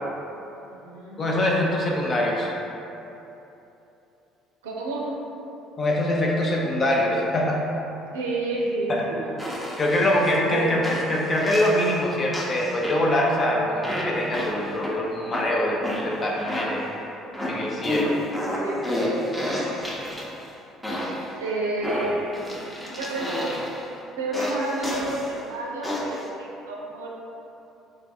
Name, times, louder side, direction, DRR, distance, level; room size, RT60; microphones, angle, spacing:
voice 1, 0.6-1.2 4.6-5.2 8.1-9.4 10.4-10.8 18.5-19.6 21.4-22.3 22.9-23.6 24.2-27.1, right 2 dB, 80° right, -3 dB, 0.5 m, -30 dB
voice 2, 1.2-2.5 5.8-7.6 8.9-9.0 9.8-16.9 17.5-18.1, left 1 dB, 35° left, -2 dB, 0.6 m, -24 dB
sound 1, 9.4-10.4 10.8-12.0 12.3-13.3 13.8-14.9 15.3-17.0 17.3-20.4 20.8-21.3 21.8-23.8 24.3-25.3 25.8-26.3, left 1 dB, 5° left, 0.8 m, -31 dB
3.1 x 2.5 x 3.5 m, 2.9 s
hypercardioid pair, 55°, 0 cm